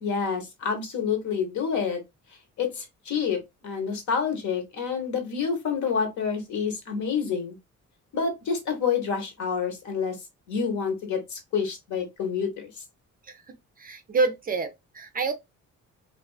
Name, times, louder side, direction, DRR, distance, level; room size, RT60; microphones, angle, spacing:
voice 1, 0.0-2.0 2.6-7.6 8.1-10.2 10.5-12.7, left 6 dB, 70° left, 1.0 m, -28 dB
voice 2, 13.8-15.3, right 4 dB, 30° right, 0.3 m, -27 dB
2.4 x 2.3 x 2.2 m
cardioid pair, 90°, 30 cm